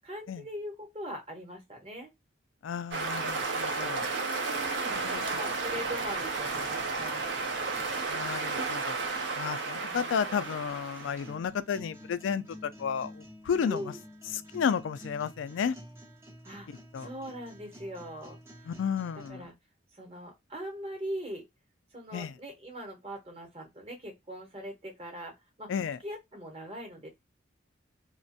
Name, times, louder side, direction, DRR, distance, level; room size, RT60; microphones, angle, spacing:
voice 1, 0.0-2.1 4.1-7.3 9.7-10.1 13.6-14.0 16.4-16.7 17.0-18.4 19.3-19.5 19.9-21.4 21.9-25.7 26.0-27.1, equal, 30° right, 0.9 m, -41 dB
voice 2, 2.6-4.1 5.0-5.3 8.1-13.9 14.3-15.8 16.9-17.1 18.7-19.5 22.1-22.3 25.7-26.0, left 7 dB, 85° left, 0.3 m, -32 dB
sound 1, 2.9-11.3, right 4 dB, 70° right, 0.6 m, -33 dB
sound 2, 3.3-19.3, equal, 15° right, 0.5 m, -51 dB
2.4 x 2.1 x 2.6 m
head